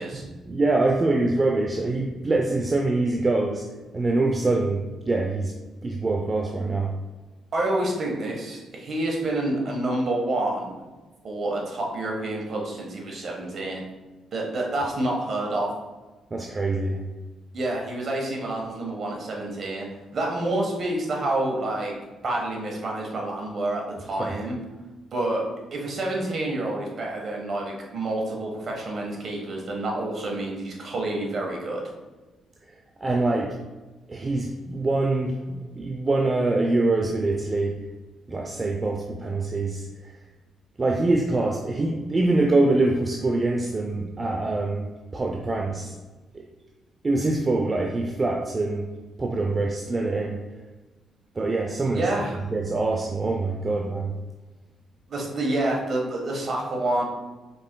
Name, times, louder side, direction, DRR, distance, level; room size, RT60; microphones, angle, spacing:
voice 1, 0.0-3.6 3.9-5.5 5.8-6.9 16.3-17.0 24.2-24.3 33.0-33.5 34.1-37.7 38.3-39.9 40.8-45.9 47.0-48.9 49.2-50.4 51.4-52.0 52.5-54.1, right 2 dB, 30° right, 1 dB, 0.5 m, -24 dB
voice 2, 7.5-10.8 11.2-13.8 14.3-15.7 17.5-19.9 20.1-21.9 22.2-24.6 25.1-25.4 25.7-31.8 51.8-52.4 55.1-57.0, right 2 dB, 50° right, 0 dB, 1.2 m, -28 dB
5.3 x 4.3 x 2.2 m, 1.2 s
cardioid pair, 85°, 0 cm